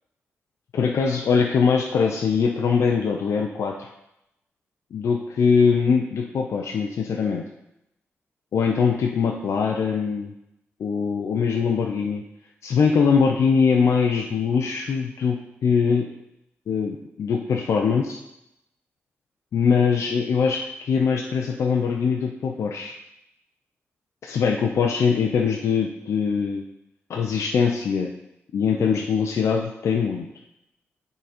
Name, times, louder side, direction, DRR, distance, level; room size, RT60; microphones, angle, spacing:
voice 1, 0.7-3.9 4.9-7.4 8.5-10.3 10.8-12.2 12.6-16.1 16.7-18.2 19.5-22.9 24.2-26.6 27.1-28.1 28.5-30.3, left 6 dB, 80° left, 1 dB, 0.6 m, -22 dB
9.1 x 4.0 x 4.2 m, 0.85 s
wide cardioid pair, 130°, 5 cm